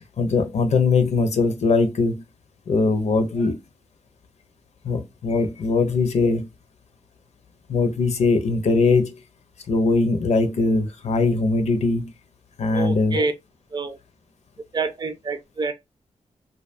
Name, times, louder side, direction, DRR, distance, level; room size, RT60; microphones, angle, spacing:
voice 1, 0.2-2.2 2.7-3.6 4.8-6.5 7.7-9.2 9.7-12.1 12.6-13.2, left 3 dB, 65° left, 0.5 m, -21 dB
voice 2, 12.7-13.3 13.7-14.0 14.7-15.7, right 4 dB, 35° right, 0.5 m, -27 dB
2.6 x 2.2 x 2.5 m
wide cardioid pair, 90°, 12 cm